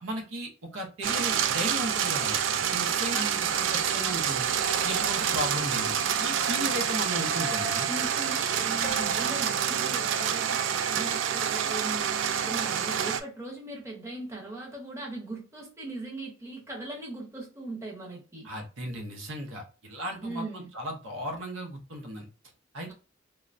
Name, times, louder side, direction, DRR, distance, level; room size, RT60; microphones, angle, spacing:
voice 1, 0.0-4.5 4.8-7.9 18.4-22.3 22.7-22.9, equal, 90° right, 0.7 m, -36 dB
sound 1, 1.0-13.2, right 8 dB, 70° right, 0.3 m, -27 dB
voice 2, 3.1-3.5 7.9-18.5 20.2-20.7, right 2 dB, 15° right, 0.7 m, -39 dB
sound 2, 8.8-11.4 11.9-12.2, right 1 dB, 45° left, 0.4 m, -47 dB
3.1 x 2.1 x 2.5 m
head